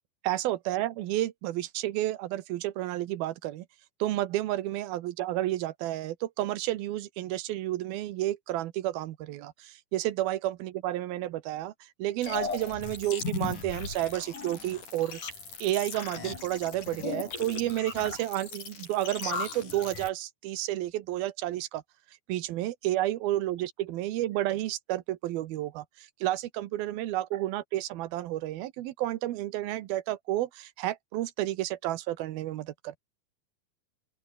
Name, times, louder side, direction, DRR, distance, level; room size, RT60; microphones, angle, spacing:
voice 1, 0.2-3.7 4.0-15.2 15.6-21.8 22.3-33.0, right 14 dB, 75° right, 2.8 m, -31 dB
sound 1, 12.2-20.1, left 5 dB, 50° left, 6.9 m, -37 dB
open air
omnidirectional pair, 4.6 m